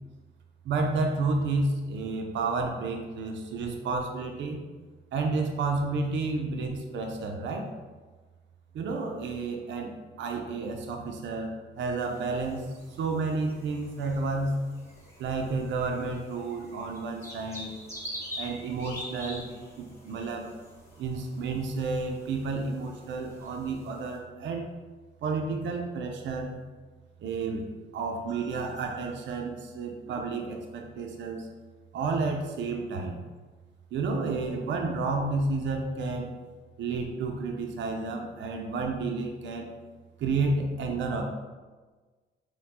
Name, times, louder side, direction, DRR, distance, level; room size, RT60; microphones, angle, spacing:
voice 1, 0.6-4.6 5.1-7.7 8.7-9.9 10.2-14.6 15.2-17.7 18.4-19.5 19.8-20.5 21.0-24.7 25.2-26.6 27.2-27.7 27.9-31.5 31.9-33.2 33.9-36.3 36.8-39.7 40.2-41.2, right 3 dB, 70° right, 3 dB, 0.6 m, -31 dB
sound 1, 12.0-24.2, left 1 dB, 15° left, 1.3 m, -46 dB
4.4 x 2.2 x 4.1 m, 1.3 s
cardioid pair, 90°, 20 cm